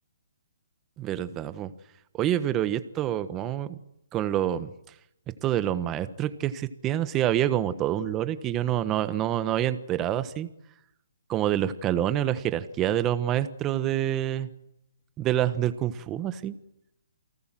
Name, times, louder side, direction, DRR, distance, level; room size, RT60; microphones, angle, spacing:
voice 1, 1.0-1.7 2.1-3.8 4.1-4.7 5.4-10.5 11.3-14.5 15.2-16.5, right 11 dB, 15° right, 12 dB, 1.3 m, -27 dB
29.0 x 19.0 x 7.7 m, 0.83 s
hypercardioid pair, 160°, 0 cm